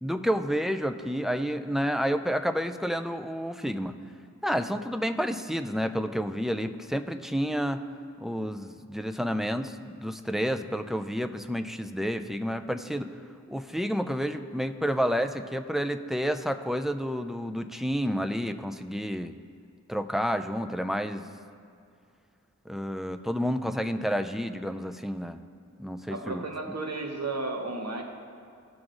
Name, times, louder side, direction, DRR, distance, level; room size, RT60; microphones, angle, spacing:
voice 1, 0.0-3.9 4.4-7.9 8.2-13.1 13.5-19.3 19.9-21.2 22.7-25.4 25.8-26.4, equal, ahead, 7 dB, 0.3 m, -30 dB
voice 2, 26.1-28.0, right 3 dB, 60° right, 2 dB, 1.0 m, -33 dB
14.5 x 6.1 x 2.5 m, 2.4 s
wide cardioid pair, 45°, 30 cm